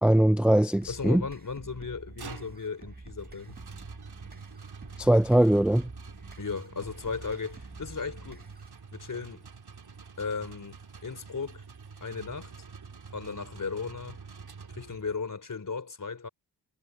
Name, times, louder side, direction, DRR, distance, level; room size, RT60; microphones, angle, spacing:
voice 1, 0.0-1.2 5.0-5.9, right 1 dB, 5° right, 0.4 m, -21 dB
sound 1, 0.8-8.8, right 2 dB, 25° right, 1.7 m, -48 dB
voice 2, 0.9-3.6 6.4-8.5 8.9-9.5 10.2-11.6 12.0-12.5 13.1-14.2 14.7-16.3, left 5 dB, 50° left, 3.8 m, -36 dB
sound 2, 1.9-15.3, right 5 dB, 65° right, 3.4 m, -47 dB
wide cardioid pair, 100°, 40 cm